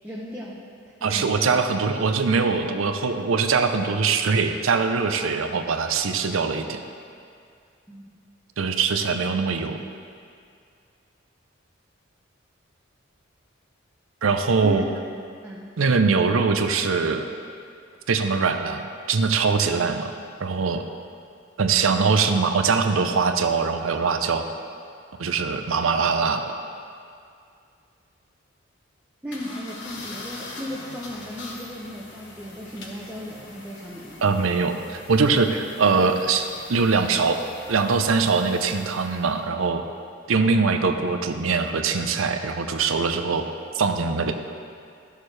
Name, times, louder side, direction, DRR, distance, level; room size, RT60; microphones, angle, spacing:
voice 1, 0.0-0.7 1.0-1.6 7.9-8.2 14.6-14.9 15.4-15.7 29.2-34.2, equal, 10° right, -6 dB, 0.7 m, -36 dB
voice 2, 1.0-6.8 8.6-9.8 14.2-14.8 15.8-17.3 18.1-18.8 19.1-20.1 20.4-20.8 21.6-24.5 25.2-26.4 34.2-37.4 37.7-39.8 40.3-43.4 43.7-44.3, right 4 dB, 80° right, 7 dB, 0.6 m, -22 dB
sound 1, 29.3-39.4, left 2 dB, 60° left, 1.1 m, -43 dB
13.0 x 6.5 x 3.2 m, 2.3 s
head